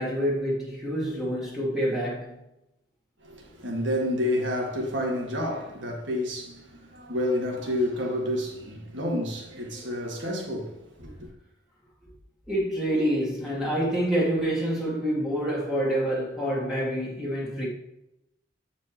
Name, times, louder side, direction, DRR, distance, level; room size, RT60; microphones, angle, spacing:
voice 1, 0.0-2.4 12.5-17.7, equal, ahead, 1.5 m, -27 dB
voice 2, 3.2-11.3, left 1 dB, 85° right, 1.7 m, -29 dB
8.6 x 4.6 x 3.0 m
head